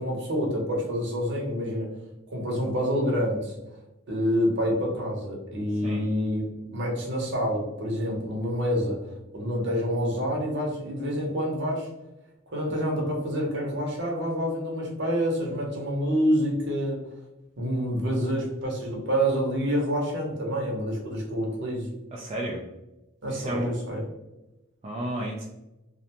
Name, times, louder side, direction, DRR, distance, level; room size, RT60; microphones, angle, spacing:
voice 1, 0.0-1.9 2.3-3.5 4.1-11.9 12.5-17.0 17.6-21.9 23.2-24.1, equal, 55° right, -1 dB, 0.8 m, -27 dB
voice 2, 22.1-22.6 23.3-23.7 24.8-25.4, right 1 dB, 30° right, -3 dB, 0.3 m, -32 dB
2.5 x 2.1 x 2.8 m, 0.97 s
head